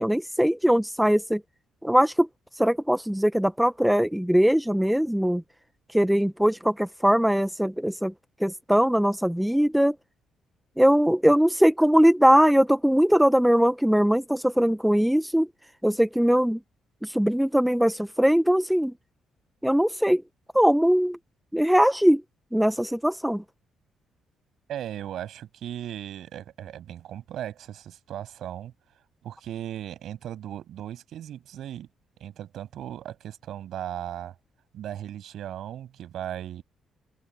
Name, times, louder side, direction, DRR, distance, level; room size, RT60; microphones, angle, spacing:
voice 1, 0.0-1.4 1.8-2.3 2.6-5.4 5.9-8.1 8.4-9.9 10.8-15.5 15.8-16.6 17.0-18.9 19.6-20.2 20.5-21.2 21.5-22.2 22.5-23.4, equal, 5° right, 0.9 m, -21 dB
voice 2, 24.7-28.7 29.2-31.9 32.2-34.3 34.7-36.6, right 11 dB, 75° right, 6.9 m, -37 dB
cardioid pair, 90°, 0 cm